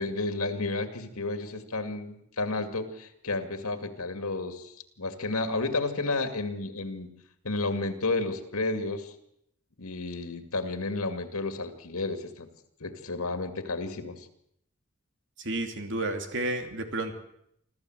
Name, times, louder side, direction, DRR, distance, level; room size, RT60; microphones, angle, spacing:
voice 1, 0.0-7.1 7.4-9.1 9.8-12.5 12.8-14.3, left 3 dB, 90° left, 7 dB, 2.3 m, -32 dB
voice 2, 15.4-17.2, right 2 dB, 60° right, 5 dB, 2.9 m, -31 dB
26.0 x 14.0 x 7.9 m, 0.75 s
head